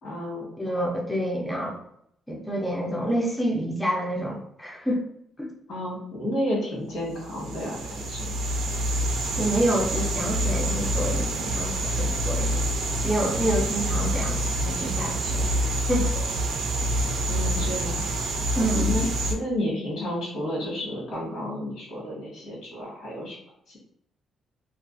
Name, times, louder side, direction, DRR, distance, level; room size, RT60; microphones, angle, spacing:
voice 1, 0.0-0.4 5.7-7.8 8.1-8.2 17.2-18.0 18.5-23.4 23.7-23.8, left 1 dB, 70° left, -4 dB, 1.3 m, -31 dB
voice 2, 0.6-1.8 2.3-5.0 5.4-5.5 9.4-12.6 13.0-16.2 18.6-19.1, right 1 dB, 10° left, -2 dB, 0.5 m, -28 dB
sound 1, 7.2-19.3, right 1 dB, 80° right, 0.4 m, -27 dB
2.4 x 2.3 x 2.5 m, 0.72 s
cardioid pair, 90°, 0 cm